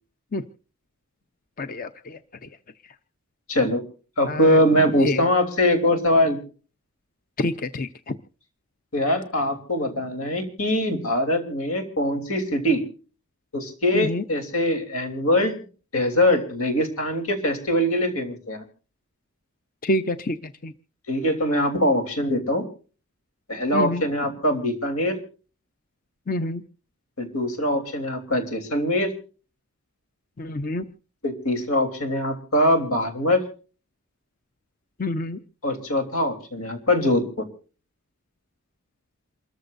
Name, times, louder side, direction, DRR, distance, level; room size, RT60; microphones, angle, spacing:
voice 1, 1.6-2.2 4.3-4.6 5.0-5.2 7.4-8.1 13.9-14.2 19.8-20.4 20.6-20.7 23.7-24.0 26.3-26.6 30.4-30.8 35.0-35.4, left 1 dB, 40° left, 11 dB, 0.6 m, -27 dB
voice 2, 3.5-3.8 4.2-6.4 8.9-12.8 13.5-15.6 15.9-18.6 21.1-22.6 23.5-25.2 27.2-29.1 31.2-33.4 35.6-37.5, left 1 dB, 85° left, 6 dB, 3.4 m, -22 dB
28.0 x 14.0 x 2.6 m, 0.38 s
head